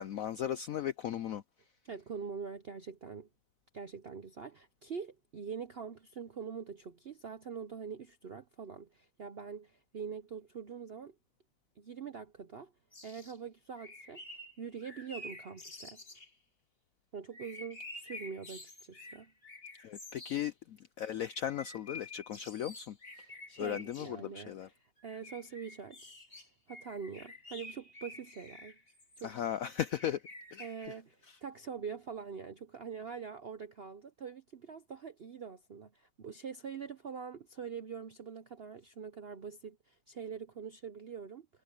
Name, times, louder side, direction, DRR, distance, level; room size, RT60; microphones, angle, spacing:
voice 1, 0.0-1.4 19.8-23.0 23.6-24.7 29.2-30.2 30.5-30.6, left 10 dB, 75° left, 0.8 m, -36 dB
voice 2, 1.8-3.3 3.7-11.1 11.8-12.7 13.0-16.0 17.1-19.3 23.5-26.1 26.7-28.8 29.2-29.4 30.6-41.5, right 6 dB, 60° right, 0.6 m, -44 dB
sound 1, 12.9-13.4 13.8-16.3 17.3-20.5 21.2-24.1 25.0-29.5 30.0-30.9, left 2 dB, 30° left, 2.8 m, -50 dB
omnidirectional pair, 2.0 m